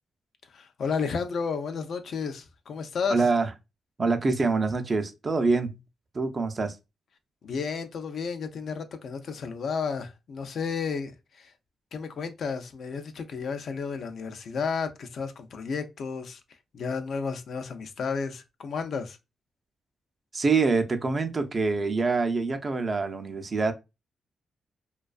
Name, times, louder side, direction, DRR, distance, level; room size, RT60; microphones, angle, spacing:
voice 1, 0.5-3.3 7.4-11.5 11.9-16.4 16.7-19.2, left 5 dB, 70° left, 0.3 m, -32 dB
voice 2, 3.1-3.5 4.0-5.8 6.1-6.8 20.3-23.7, right 4 dB, 40° right, 0.4 m, -25 dB
2.4 x 2.3 x 2.3 m
cardioid pair, 75°, 0 cm